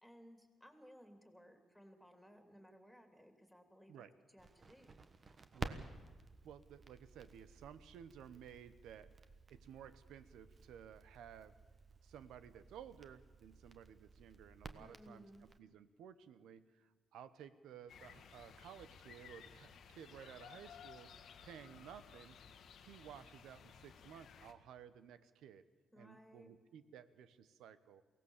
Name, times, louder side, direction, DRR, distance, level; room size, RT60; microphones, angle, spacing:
voice 1, 0.0-4.0 4.3-5.0 14.8-15.4 25.9-26.6, equal, ahead, 5 dB, 3.0 m, -60 dB
Crackle, 4.4-15.6, right 4 dB, 40° right, 1.3 m, -53 dB
voice 2, 5.5-5.8 6.4-9.1 9.5-11.5 12.0-21.1 21.4-22.4 22.8-25.6 26.0-28.0, right 9 dB, 90° right, 13 dB, 1.0 m, -55 dB
sound 1, 17.9-24.5, left 7 dB, 75° left, 1.4 m, -57 dB
23.0 x 17.0 x 7.3 m, 1.3 s
cardioid pair, 90°, 0 cm